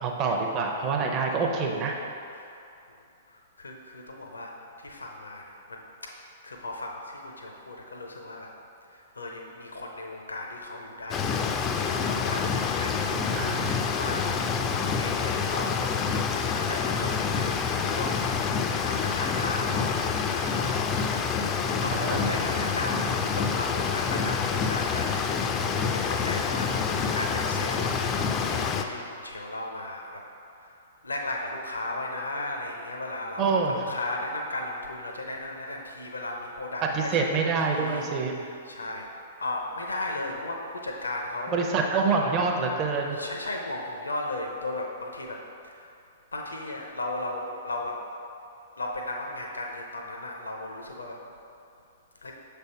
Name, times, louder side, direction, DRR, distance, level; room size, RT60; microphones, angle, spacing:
voice 1, 0.0-2.0 13.1-13.9 21.9-22.3 33.4-33.8 36.8-38.3 41.5-43.2, right 4 dB, 30° right, 1 dB, 0.6 m, -26 dB
voice 2, 3.3-5.8 6.4-8.5 8.9-13.5 13.8-14.3 14.7-16.0 16.5-18.2 18.7-23.1 23.3-30.2 30.6-39.1 39.4-41.7 43.1-45.9 46.3-48.0 48.8-51.2 52.2-52.3, left 2 dB, 75° left, 1 dB, 0.6 m, -36 dB
sound 1, 11.1-28.8, left 6 dB, 25° left, 0.3 m, -27 dB
6.6 x 3.4 x 4.3 m, 2.6 s
figure-of-eight pair, 110°, 0 cm